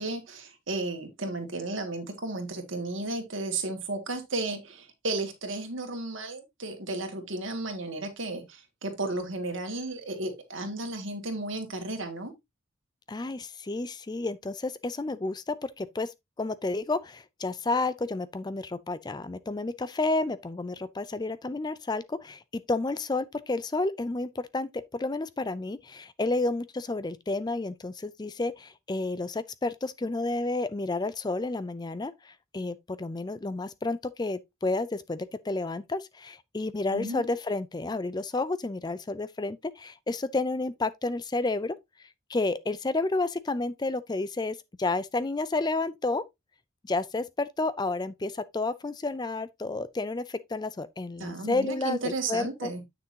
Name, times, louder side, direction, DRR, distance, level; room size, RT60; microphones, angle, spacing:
voice 1, 0.0-12.3 36.9-37.3 51.2-52.8, right 2 dB, 60° right, 2.1 m, -34 dB
voice 2, 13.1-41.8 42.3-46.2 46.8-52.7, left 2 dB, 20° left, 0.4 m, -31 dB
9.5 x 6.1 x 2.8 m
head